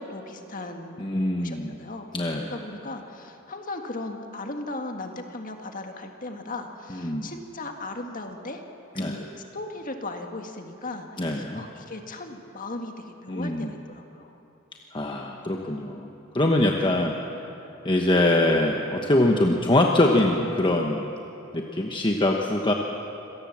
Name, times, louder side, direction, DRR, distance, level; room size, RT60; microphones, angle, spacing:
voice 1, 0.0-2.1 2.5-8.6 8.9-9.3 9.5-14.4, left 2 dB, 40° left, 4 dB, 1.9 m, -37 dB
voice 2, 1.0-1.7 2.1-2.5 6.9-7.3 9.0-9.2 11.2-11.6 13.3-13.7 14.9-17.2 17.8-21.0 21.5-22.7, left 1 dB, 25° left, 1 dB, 1.1 m, -23 dB
26.0 x 18.0 x 7.4 m, 2.9 s
head